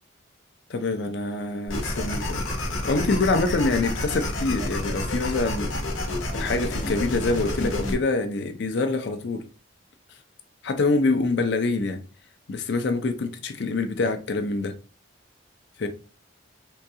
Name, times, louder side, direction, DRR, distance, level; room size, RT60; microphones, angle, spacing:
voice 1, 0.7-2.4 2.8-5.7 6.3-9.5 10.6-12.0 12.5-14.7 15.8-15.9, left 3 dB, 60° left, 0.5 m, -25 dB
sound 1, 1.7-7.9, left 1 dB, 85° left, 0.9 m, -29 dB
3.8 x 2.3 x 2.7 m
head